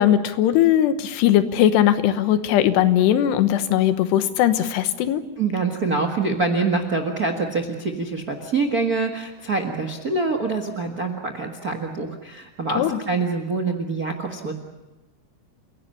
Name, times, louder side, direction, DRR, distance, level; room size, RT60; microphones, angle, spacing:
voice 1, 0.0-5.2 12.8-13.0, left 11 dB, 85° left, 10 dB, 3.3 m, -19 dB
voice 2, 5.4-14.5, right 3 dB, 80° right, 3 dB, 0.8 m, -25 dB
29.0 x 17.0 x 8.4 m, 1.0 s
omnidirectional pair, 4.7 m